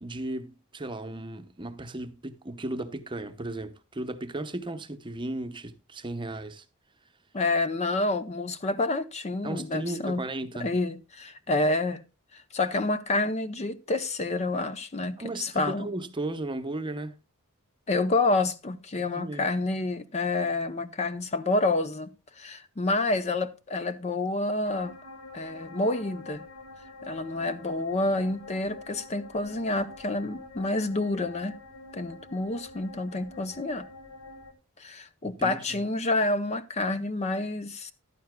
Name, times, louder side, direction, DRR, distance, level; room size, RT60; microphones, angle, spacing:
voice 1, 0.0-6.6 9.4-10.8 15.2-17.1 19.0-19.5 35.2-35.8, right 2 dB, 20° right, 0.8 m, -35 dB
voice 2, 7.3-10.2 10.6-12.0 12.3-15.9 17.9-22.1 22.4-25.0 25.3-26.4 27.0-31.6 31.9-33.9 34.8-37.9, left 2 dB, 30° left, 0.6 m, -28 dB
sound 1, 24.6-34.5, left 2 dB, 70° left, 1.7 m, -46 dB
14.5 x 11.5 x 2.2 m
head